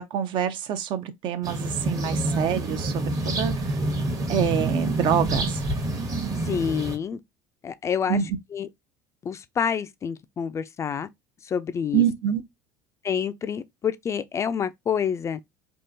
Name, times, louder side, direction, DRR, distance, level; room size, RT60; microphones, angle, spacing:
voice 1, 0.0-3.8 4.3-5.6 8.1-8.4 11.9-12.4, right 9 dB, 55° right, 0.6 m, -26 dB
sound 1, 1.4-7.0, right 2 dB, 35° right, 0.9 m, -27 dB
voice 2, 6.4-7.2 7.6-8.2 8.5-8.7 9.2-11.1 11.4-12.0 13.0-15.4, left 7 dB, 30° left, 0.3 m, -28 dB
3.6 x 2.4 x 2.6 m
supercardioid pair, 95°, 9 cm